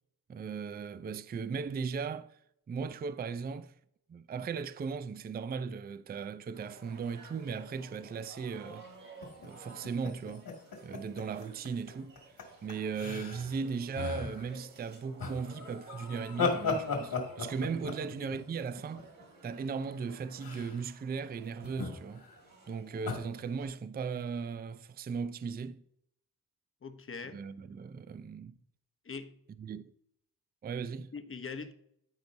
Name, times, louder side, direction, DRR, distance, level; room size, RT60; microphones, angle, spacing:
voice 1, 0.3-2.4 2.7-3.7 4.1-8.9 9.4-10.5 10.8-12.2 12.6-19.1 19.4-22.3 22.7-25.8 27.3-28.6 29.6-29.9 30.6-31.1, right 5 dB, 25° right, 0.4 m, -37 dB
sound 1, 6.5-23.7, right 3 dB, 60° right, 2.9 m, -55 dB
sound 2, 9.2-11.9 12.2-12.4 12.7-13.6 13.9-14.6 15.2-19.5 20.4-20.9 21.6-22.4 23.1-23.2, left 4 dB, 70° left, 2.1 m, -36 dB
voice 2, 18.0-18.3 18.6-18.7 26.8-27.4 29.0-29.4 31.1-31.7, left 5 dB, 35° left, 0.9 m, -43 dB
13.5 x 4.5 x 2.6 m
cardioid pair, 80°, 37 cm